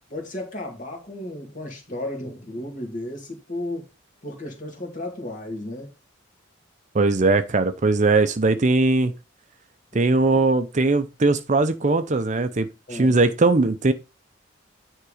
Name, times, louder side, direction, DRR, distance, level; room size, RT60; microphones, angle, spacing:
voice 1, 0.1-3.9 4.2-5.9 12.9-13.2, left 1 dB, 40° left, 2.3 m, -34 dB
voice 2, 6.9-9.1 9.9-13.9, right 3 dB, 40° right, 0.6 m, -20 dB
9.6 x 3.6 x 4.9 m
head